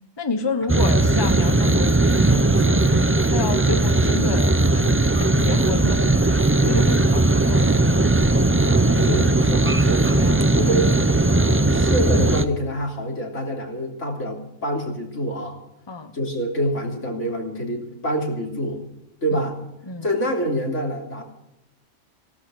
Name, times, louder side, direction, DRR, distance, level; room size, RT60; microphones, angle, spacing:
voice 1, 0.2-2.8 3.3-4.8 5.4-6.0 6.2-7.8 11.7-11.8 15.9-16.2 19.3-19.4 19.9-20.1, left 3 dB, 20° left, 9 dB, 1.1 m, -29 dB
sound 1, 0.7-12.4, right 2 dB, 15° right, 0.6 m, -18 dB
voice 2, 8.9-11.1 11.7-15.6 16.1-18.8 19.2-19.6 20.0-21.2, equal, 75° left, 1 dB, 3.7 m, -26 dB
17.0 x 13.0 x 6.3 m, 0.86 s
omnidirectional pair, 1.3 m